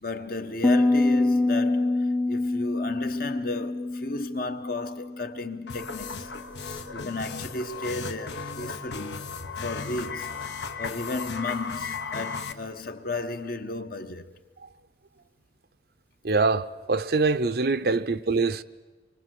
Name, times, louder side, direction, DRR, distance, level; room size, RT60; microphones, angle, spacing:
voice 1, 0.0-6.3 6.9-9.2 9.6-10.4 10.8-14.3 17.8-18.0, left 2 dB, 55° left, 1.2 m, -34 dB
Piano, 0.6-6.2, left 2 dB, 10° left, 0.8 m, -26 dB
sound 1, 5.7-12.5, left 4 dB, 80° left, 1.3 m, -35 dB
voice 2, 16.2-18.6, right 3 dB, 60° right, 0.7 m, -24 dB
25.5 x 23.5 x 7.8 m
head